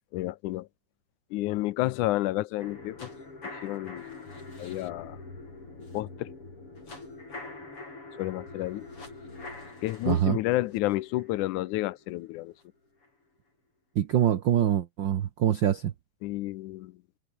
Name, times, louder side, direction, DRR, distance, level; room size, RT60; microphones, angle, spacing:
voice 1, 0.1-0.7 1.3-3.1 3.4-5.2 5.9-6.4 8.2-8.9 9.8-12.5 16.2-17.0, left 17 dB, 80° left, 2.2 m, -31 dB
sound 1, 2.6-12.6 13.0-13.1, left 3 dB, 45° left, 8.3 m, -45 dB
voice 2, 10.1-10.4 13.9-15.9, right 10 dB, 80° right, 1.0 m, -24 dB
omnidirectional pair, 3.5 m